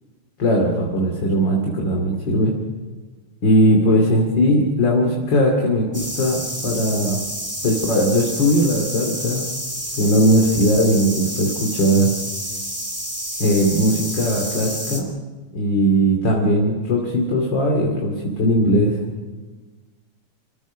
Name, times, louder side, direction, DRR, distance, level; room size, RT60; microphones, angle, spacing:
voice 1, 0.4-2.5 3.4-7.2 7.6-9.5 10.0-12.1 13.4-15.1 15.5-19.0, equal, 35° left, 0 dB, 3.0 m, -19 dB
sound 1, 5.9-15.0, equal, 5° right, 2.5 m, -29 dB
29.5 x 15.5 x 6.3 m, 1.3 s
omnidirectional pair, 3.6 m